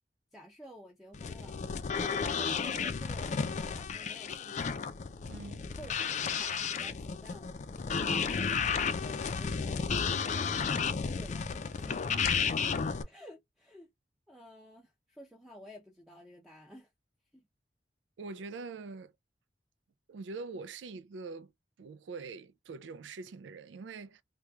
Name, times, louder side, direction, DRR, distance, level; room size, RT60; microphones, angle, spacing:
voice 1, 0.3-1.6 2.4-4.8 5.7-7.7 8.0-10.7 11.1-12.3 12.7-12.8 13.1-13.9 14.3-16.9 17.3-17.5, equal, ahead, 0.6 m, -52 dB
sound 1, 1.1-13.0, left 6 dB, 40° left, 0.4 m, -33 dB
voice 2, 5.3-5.6 8.0-8.2 18.2-19.1 20.1-21.5 21.8-24.2, right 4 dB, 85° right, 0.4 m, -44 dB
3.0 x 2.2 x 3.5 m
head